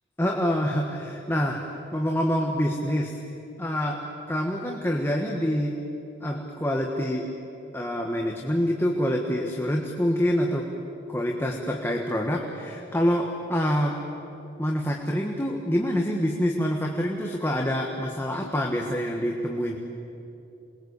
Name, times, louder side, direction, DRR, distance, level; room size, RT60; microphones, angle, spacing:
voice 1, 0.2-1.6 1.9-3.1 3.6-4.0 4.3-5.7 6.2-7.3 7.7-10.7 11.1-14.0 14.6-19.8, equal, 10° left, 0 dB, 1.5 m, -26 dB
27.5 x 21.0 x 8.3 m, 2.8 s
head